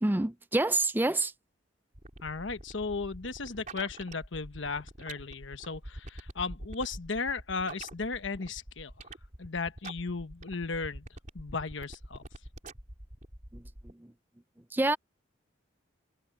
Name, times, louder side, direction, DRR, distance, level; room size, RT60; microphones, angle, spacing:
voice 1, 0.0-1.3 13.5-13.6 14.7-15.0, right 2 dB, 10° right, 0.4 m, -27 dB
sound 1, 1.9-13.9, right 1 dB, 40° right, 3.8 m, -46 dB
voice 2, 2.2-9.1 9.4-11.1 11.3-12.2, left 4 dB, 75° left, 1.2 m, -35 dB
head